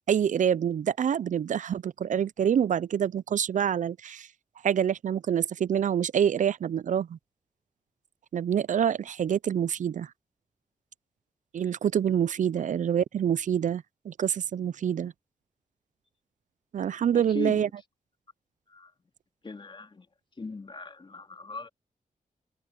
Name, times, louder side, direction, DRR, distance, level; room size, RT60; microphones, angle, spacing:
voice 1, 0.1-4.3 4.6-7.2 8.3-10.1 11.5-15.1 16.7-17.7, right 8 dB, 65° right, 0.4 m, -26 dB
voice 2, 17.1-17.7 18.7-18.9 19.4-20.1 20.4-21.7, left 3 dB, 35° left, 3.2 m, -38 dB
wide cardioid pair, 100°, 14 cm